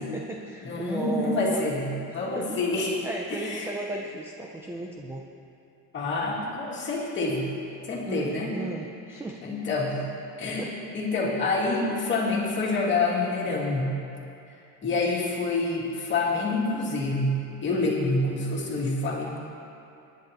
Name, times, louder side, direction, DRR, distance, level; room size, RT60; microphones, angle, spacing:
voice 1, 0.0-1.6 2.1-2.6 3.0-5.3 8.1-9.4 10.6-10.7, right 2 dB, 5° right, 0 dB, 0.4 m, -35 dB
voice 2, 0.6-2.9 3.3-3.7 5.9-7.5 7.8-8.5 9.4-10.0 10.4-10.7 10.9-13.9 14.8-17.4 17.6-19.4, left 3 dB, 30° left, -5 dB, 2.5 m, -27 dB
23.0 x 10.5 x 3.0 m, 2.7 s
cardioid pair, 155°, 38 cm